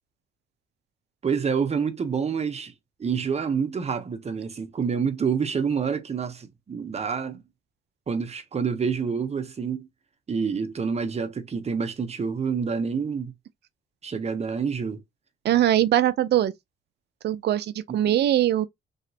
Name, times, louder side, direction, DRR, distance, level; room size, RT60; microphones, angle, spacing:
voice 1, 1.2-2.7 3.0-7.4 8.1-9.9 10.3-13.3 14.0-15.0 17.9-18.0, right 6 dB, 35° right, 0.8 m, -27 dB
voice 2, 15.4-16.5 17.2-18.6, right 12 dB, 60° right, 0.5 m, -21 dB
3.2 x 2.9 x 2.7 m
cardioid pair, 90°, 20 cm